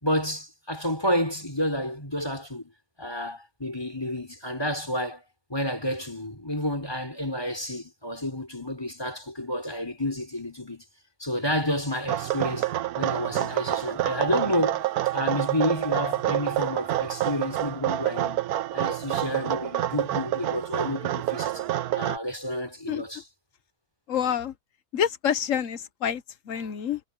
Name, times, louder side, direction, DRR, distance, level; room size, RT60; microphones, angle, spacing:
voice 1, 0.0-2.7 3.0-5.2 5.5-10.8 11.2-14.8 15.1-18.4 18.7-21.6 21.9-23.2, left 1 dB, 15° left, 5.0 m, -30 dB
sound 1, 12.1-22.2, right 13 dB, 90° right, 1.2 m, -28 dB
voice 2, 24.1-24.5 24.9-27.0, left 8 dB, 65° left, 1.2 m, -27 dB
omnidirectional pair, 1.5 m